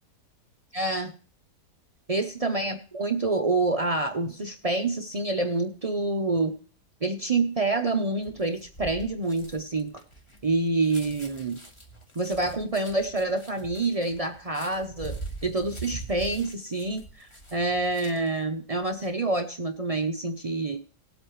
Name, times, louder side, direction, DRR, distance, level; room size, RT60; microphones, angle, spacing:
voice 1, 0.7-1.1 2.1-6.5 7.0-9.9 10.4-11.6 12.2-20.8, right 2 dB, 50° right, 5 dB, 0.4 m, -27 dB
sound 1, 8.2-18.4 18.8-19.1, right 3 dB, 20° left, 1.2 m, -43 dB
19.0 x 8.1 x 3.1 m, 0.40 s
omnidirectional pair, 1.7 m